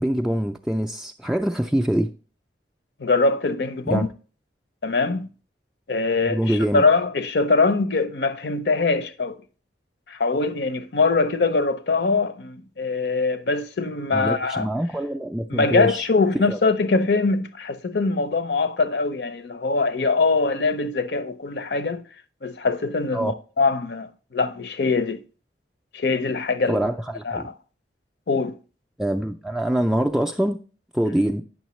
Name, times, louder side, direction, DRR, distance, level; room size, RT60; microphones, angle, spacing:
voice 1, 0.0-2.1 3.9-4.1 6.2-6.8 14.1-16.1 16.5-16.6 23.1-23.3 26.7-27.5 29.0-30.6 30.9-31.4, right 1 dB, 5° right, 0.3 m, -24 dB
voice 2, 3.0-4.1 4.8-5.3 5.9-9.4 10.1-14.7 15.5-22.0 22.4-25.2 25.9-26.9 27.2-27.5 28.3-28.5, left 3 dB, 65° left, 0.6 m, -23 dB
9.3 x 6.3 x 3.1 m
head